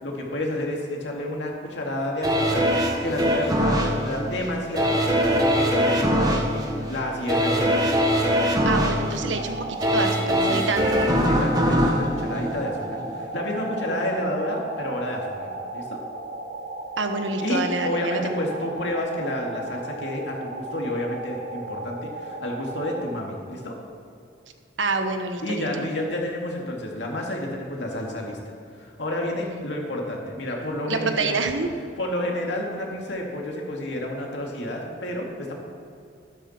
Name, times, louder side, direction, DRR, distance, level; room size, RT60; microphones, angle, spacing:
voice 1, 0.0-2.7 3.0-7.8 10.4-16.0 17.4-23.7 25.4-28.4 28.7-31.4 32.0-35.5, left 1 dB, 70° left, 0 dB, 2.4 m, -30 dB
sound 1, 2.2-13.2 13.6-13.7, equal, 20° right, 1.4 m, -22 dB
voice 2, 8.6-11.0 17.0-18.4 24.8-25.7 30.9-31.7, right 3 dB, 90° right, 6 dB, 1.2 m, -27 dB
sound 2, 9.3-23.2, right 2 dB, 70° right, 2.0 m, -35 dB
12.5 x 12.0 x 4.4 m, 2.5 s
head